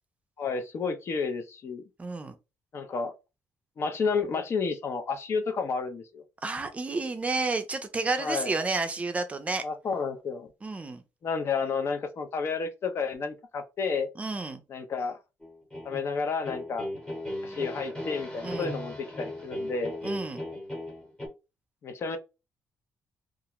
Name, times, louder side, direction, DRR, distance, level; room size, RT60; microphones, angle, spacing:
voice 1, 0.4-1.8 2.7-3.1 3.8-6.2 8.2-8.5 9.6-10.5 11.2-14.1 14.7-15.2 15.8-16.9 17.4-20.0 21.8-22.2, left 5 dB, 45° left, 0.5 m, -31 dB
voice 2, 2.0-2.4 6.4-9.6 10.6-11.0 14.2-14.6 18.4-18.7 20.0-20.4, right 3 dB, 25° right, 0.4 m, -31 dB
sound 1, 15.4-21.3, left 1 dB, 15° left, 1.0 m, -37 dB
2.4 x 2.1 x 2.9 m
cardioid pair, 115°, 6 cm